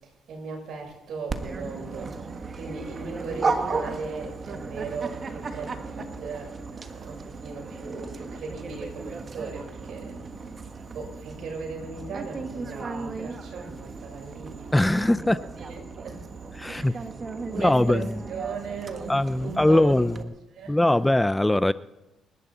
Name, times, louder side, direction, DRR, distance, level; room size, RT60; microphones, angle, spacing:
voice 1, 0.0-2.1 2.6-10.2 10.9-16.2 16.7-17.1 17.5-18.0 18.3-20.3 20.5-21.0, right 4 dB, 70° right, 0 dB, 6.9 m, -38 dB
Dog, 1.3-20.2, right 4 dB, 40° right, 1.5 m, -35 dB
voice 2, 14.7-15.4 16.6-16.9 17.6-18.0 19.1-20.2 20.7-21.7, left 1 dB, 10° left, 15 dB, 0.5 m, -21 dB
29.5 x 11.0 x 4.2 m, 1.0 s
cardioid pair, 90°, 0 cm